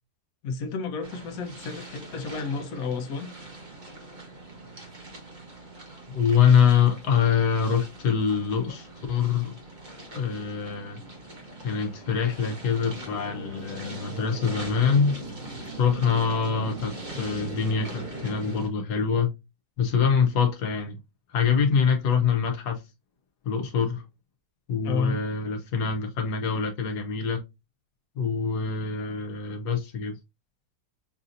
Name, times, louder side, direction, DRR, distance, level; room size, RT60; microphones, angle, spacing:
voice 1, 0.4-3.3 24.8-25.2, left 4 dB, 65° left, 1.2 m, -31 dB
sound 1, 1.0-18.7, right 2 dB, 30° right, 1.1 m, -41 dB
voice 2, 6.1-9.5 10.1-11.0 11.6-15.2 15.8-19.3 19.8-21.0 21.3-22.8 23.4-24.0 24.7-27.4 28.1-30.2, left 6 dB, 85° left, 1.4 m, -24 dB
5.9 x 2.7 x 2.5 m
omnidirectional pair, 1.7 m